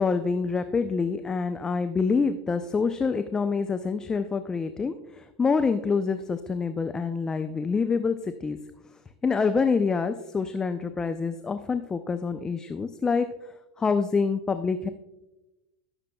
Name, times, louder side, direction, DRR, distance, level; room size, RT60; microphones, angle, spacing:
voice 1, 0.0-8.6 9.2-13.3 13.8-14.9, left 5 dB, 20° left, 9 dB, 0.5 m, -26 dB
18.0 x 6.7 x 2.2 m, 0.98 s
figure-of-eight pair, 85°, 4 cm